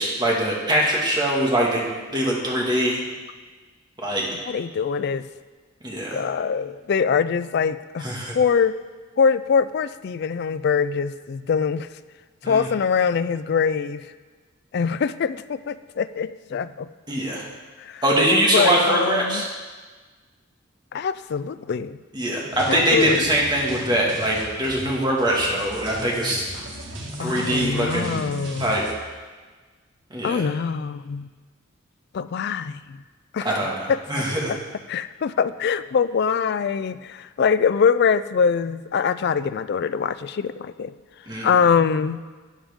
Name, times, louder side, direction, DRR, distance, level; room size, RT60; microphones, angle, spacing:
voice 1, 0.0-1.8 2.1-3.0 4.0-4.3 5.8-6.2 8.0-8.4 12.4-12.7 17.1-17.4 18.0-19.5 22.1-26.4 27.2-28.2 28.6-28.9 30.1-30.4 33.4-34.5 41.3-41.5, right 1 dB, 20° right, -3 dB, 1.8 m, -22 dB
voice 2, 4.5-5.3 6.1-8.1 8.3-8.8 9.2-11.9 12.4-14.1 14.7-16.9 17.8-18.0 18.3-19.4 20.9-22.0 22.7-23.3 27.2-28.8 30.2-31.3 32.1-33.0 33.3-33.5 33.9-34.0 34.9-40.9 41.4-42.2, left 6 dB, 50° left, 14 dB, 0.3 m, -23 dB
sound 1, 22.5-28.9, right 1 dB, 60° right, 1.6 m, -36 dB
12.0 x 8.9 x 3.6 m, 1.4 s
head